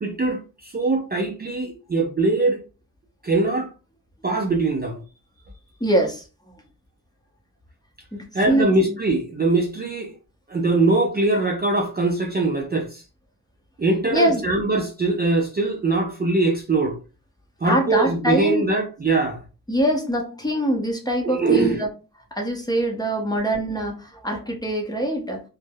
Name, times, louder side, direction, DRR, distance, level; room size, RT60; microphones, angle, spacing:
voice 1, 0.0-2.6 3.2-3.7 4.2-5.0 8.3-10.1 10.5-13.0 13.8-16.9 17.6-19.4 21.2-21.8, right 3 dB, 25° right, 0.4 m, -22 dB
voice 2, 5.8-6.2 8.3-9.0 14.1-14.4 17.6-18.6 19.7-21.9 22.3-25.4, right 1 dB, 10° left, 0.7 m, -23 dB
3.3 x 2.1 x 2.2 m
wide cardioid pair, 120°, 37 cm